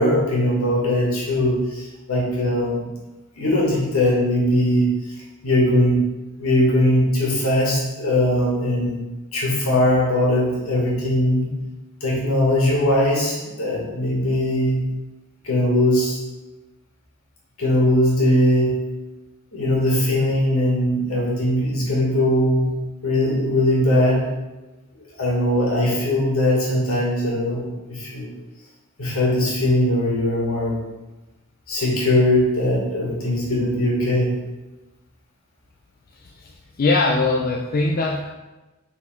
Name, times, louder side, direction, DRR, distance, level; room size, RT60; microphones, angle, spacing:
voice 1, 0.0-2.8 3.4-5.1 5.4-6.0 6.4-9.0 9.3-11.5 12.0-14.8 15.4-16.2 17.6-18.8 19.5-22.7 23.0-24.3 25.2-28.3 29.0-30.8 31.7-34.4, left 1 dB, 70° left, -4 dB, 2.1 m, -20 dB
voice 2, 36.8-38.3, left 3 dB, 45° left, 0 dB, 0.5 m, -21 dB
6.0 x 4.0 x 4.5 m, 1.1 s
head